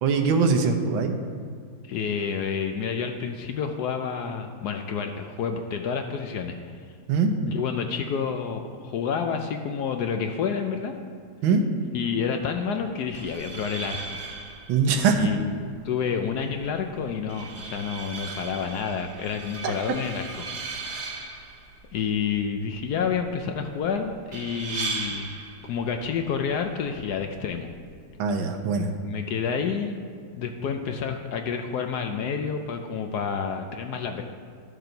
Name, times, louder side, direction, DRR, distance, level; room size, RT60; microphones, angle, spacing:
voice 1, 0.0-1.2 7.1-7.3 11.4-11.6 14.7-15.3 18.3-18.4 19.6-19.7 28.2-28.9, right 5 dB, 85° right, 5 dB, 1.6 m, -22 dB
voice 2, 1.8-6.6 7.5-10.9 11.9-14.2 15.2-20.5 21.9-25.3 25.6-27.7 29.0-30.0 30.3-34.2, left 6 dB, 70° left, 5 dB, 1.0 m, -29 dB
sound 1, 13.0-28.0, right 3 dB, 60° right, 0.7 m, -38 dB
12.0 x 6.7 x 4.5 m, 2.1 s
omnidirectional pair, 2.1 m